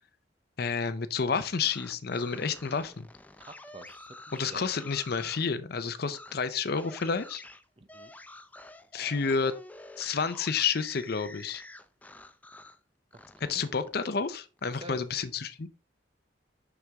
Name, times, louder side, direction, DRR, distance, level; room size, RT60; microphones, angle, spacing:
voice 1, 0.6-3.1 4.3-7.4 8.9-9.5 10.0-11.6 13.4-15.7, left 5 dB, 55° left, 0.6 m, -30 dB
sound 1, 1.5-5.5 6.1-6.3 6.7-12.8 13.1-14.8, left 2 dB, 10° left, 0.4 m, -49 dB
voice 2, 3.5-4.6 7.8-8.1 13.1-13.5 14.8-15.0, right 2 dB, 30° right, 0.7 m, -48 dB
6.4 x 6.0 x 3.5 m
head